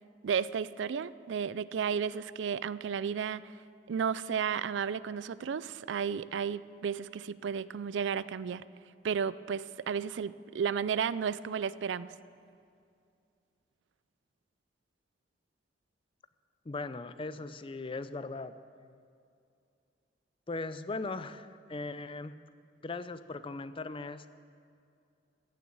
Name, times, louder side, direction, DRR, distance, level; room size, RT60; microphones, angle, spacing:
voice 1, 0.2-3.5 3.9-8.6 9.0-12.1, right 7 dB, 85° right, 17 dB, 0.4 m, -33 dB
voice 2, 16.7-18.5 18.8-19.0 20.5-22.4 22.8-24.3, left 3 dB, 30° left, 13 dB, 0.5 m, -39 dB
15.0 x 7.0 x 8.6 m, 2.4 s
head